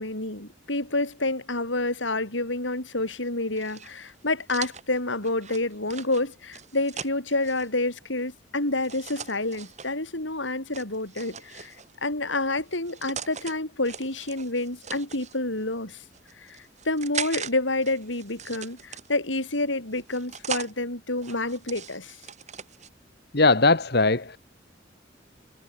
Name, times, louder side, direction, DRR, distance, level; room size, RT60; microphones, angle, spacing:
voice 1, 0.0-11.8 12.0-16.0 16.4-22.2, left 2 dB, 85° left, 6.4 m, -28 dB
sound 1, 3.5-7.7 8.8-9.9 10.7-12.0 12.7-13.5 13.8-15.4 16.0-17.5 17.8-19.4 19.9-20.7 21.2-22.9, right 7 dB, 40° right, 7.3 m, -39 dB
voice 2, 23.3-24.4, left 3 dB, 60° left, 2.0 m, -20 dB
head